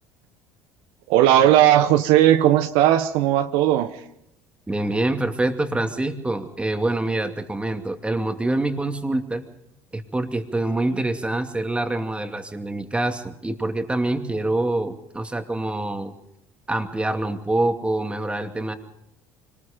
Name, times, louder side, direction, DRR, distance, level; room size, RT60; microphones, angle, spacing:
voice 1, 1.1-4.0 10.9-11.0, right 12 dB, 75° right, 9 dB, 1.0 m, -17 dB
voice 2, 4.7-9.4 9.9-16.1 16.7-18.7, right 2 dB, 10° right, 6 dB, 2.5 m, -25 dB
25.5 x 20.0 x 5.3 m, 0.78 s
hypercardioid pair, 75°, 9 cm